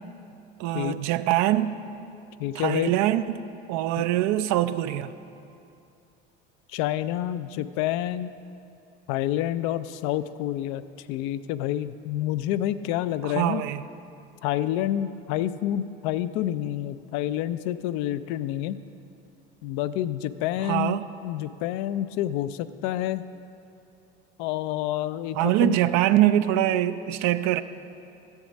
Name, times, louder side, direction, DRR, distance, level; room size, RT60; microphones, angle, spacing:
voice 1, 0.6-1.8 2.5-3.4 3.7-5.1 13.2-13.8 20.6-21.0 25.4-27.6, right 13 dB, 60° right, 13 dB, 0.5 m, -23 dB
voice 2, 2.4-2.9 4.0-4.1 6.7-8.3 9.1-10.8 11.1-13.6 14.4-18.8 19.6-23.2 24.4-25.8, left 12 dB, 65° left, 13 dB, 0.5 m, -28 dB
10.5 x 7.2 x 5.2 m, 2.6 s
hypercardioid pair, 75°, 32 cm